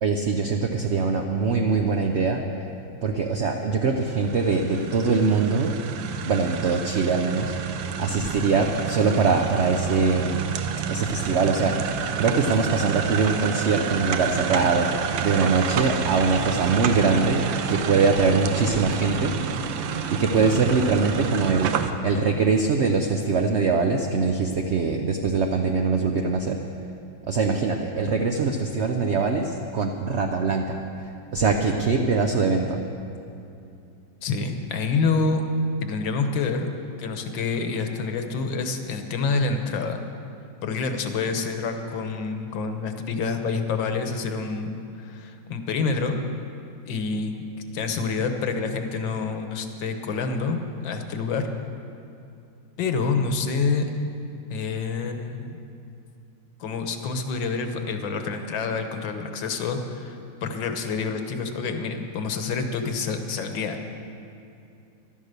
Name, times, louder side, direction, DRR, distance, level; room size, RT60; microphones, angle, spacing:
voice 1, 0.0-2.4 3.0-5.8 6.3-7.6 8.0-10.5 10.9-19.3 20.1-21.8 22.0-26.6 27.3-30.8 31.3-32.8, right 4 dB, 60° right, 3 dB, 0.7 m, -23 dB
sound 1, 3.9-21.9, right 7 dB, 90° right, 1.5 m, -29 dB
voice 2, 34.2-35.4 35.8-36.7 37.0-40.0 40.6-46.2 46.9-47.5 47.7-51.5 52.8-53.9 54.5-55.6 56.6-60.2 60.4-63.8, left 4 dB, 90° left, 6 dB, 1.8 m, -27 dB
14.5 x 12.0 x 6.7 m, 2.6 s
omnidirectional pair, 2.0 m